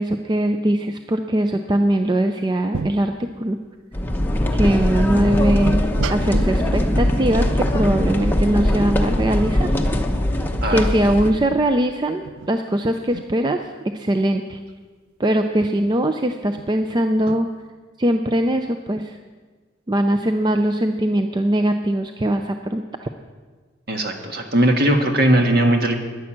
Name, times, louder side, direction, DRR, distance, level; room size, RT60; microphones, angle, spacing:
voice 1, 0.0-3.6 4.5-5.8 6.1-9.7 10.7-14.6 15.2-17.5 18.0-19.2 19.9-23.1, right 1 dB, 20° right, 6 dB, 0.4 m, -21 dB
sound 1, 2.7-3.1 3.8-3.9 4.6-4.7 5.1-6.7 8.7-9.7 9.9-10.0 10.4-10.7 12.2-13.3 16.6-17.4, right 4 dB, 85° right, 0.4 m, -33 dB
sound 2, 3.9-11.3, left 1 dB, 10° left, 0.8 m, -21 dB
voice 2, 23.9-26.0, right 1 dB, 50° right, 3 dB, 1.6 m, -18 dB
10.5 x 10.5 x 7.3 m, 1.4 s
head